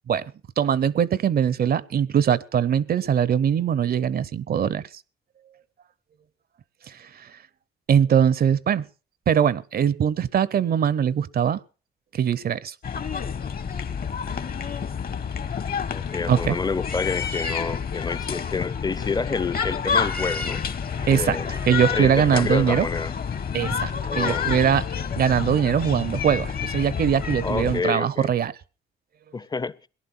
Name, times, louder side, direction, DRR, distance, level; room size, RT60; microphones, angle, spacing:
voice 1, 0.6-4.8 6.9-7.3 7.9-8.9 9.3-11.6 12.1-12.7 16.3-16.6 21.1-21.4 21.7-22.9 23.5-24.9 25.2-28.5, right 8 dB, 50° right, 0.7 m, -22 dB
sound 1, 12.8-27.8, left 6 dB, 50° left, 1.4 m, -29 dB
voice 2, 15.9-20.6 21.1-23.1 24.0-24.5 27.4-28.3 29.3-29.8, left 4 dB, 20° left, 0.6 m, -29 dB
18.0 x 11.0 x 5.7 m
cardioid pair, 90°, 20 cm